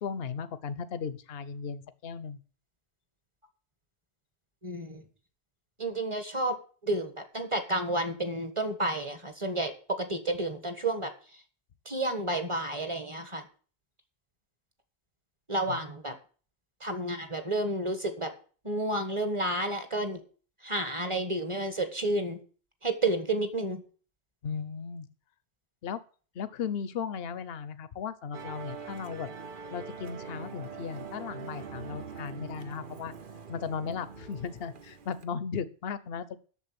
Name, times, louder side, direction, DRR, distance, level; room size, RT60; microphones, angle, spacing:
voice 1, 0.0-2.4 15.7-15.8 24.4-25.1 25.8-26.0 26.3-29.3 29.7-33.1 33.5-36.4, left 6 dB, 60° left, 15 dB, 1.0 m, -36 dB
voice 2, 4.6-5.0 5.8-6.6 6.8-11.1 11.8-13.4 15.5-16.1 16.8-18.3 18.6-20.2 20.6-22.4 22.8-23.8, right 1 dB, 25° right, 8 dB, 1.5 m, -31 dB
Musical instrument, 28.3-35.3, right 5 dB, 50° right, 1.0 m, -43 dB
8.4 x 6.9 x 8.4 m, 0.40 s
omnidirectional pair, 1.2 m